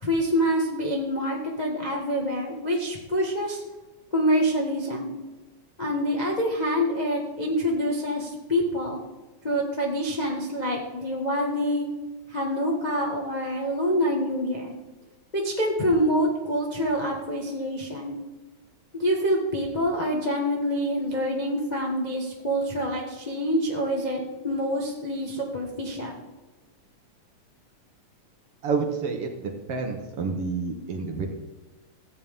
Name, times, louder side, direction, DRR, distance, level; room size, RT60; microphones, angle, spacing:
voice 1, 0.0-3.6 4.1-5.1 5.8-9.0 9.4-11.9 12.3-14.7 15.3-18.2 18.9-26.2, equal, 25° left, -2 dB, 0.9 m, -26 dB
voice 2, 28.6-31.3, right 4 dB, 60° right, 3 dB, 1.9 m, -29 dB
15.0 x 8.6 x 3.6 m, 1.2 s
omnidirectional pair, 3.3 m